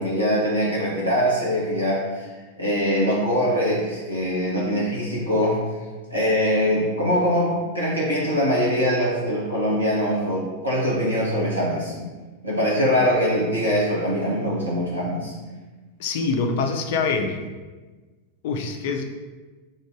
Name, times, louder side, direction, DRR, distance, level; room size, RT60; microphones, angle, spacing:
voice 1, 0.0-2.3 2.6-5.6 6.1-12.0 12.4-15.3, equal, 85° right, -5 dB, 0.9 m, -23 dB
voice 2, 16.0-17.4 18.4-19.0, left 4 dB, 50° left, 4 dB, 0.5 m, -24 dB
4.0 x 2.6 x 4.7 m, 1.3 s
figure-of-eight pair, 90°, 0 cm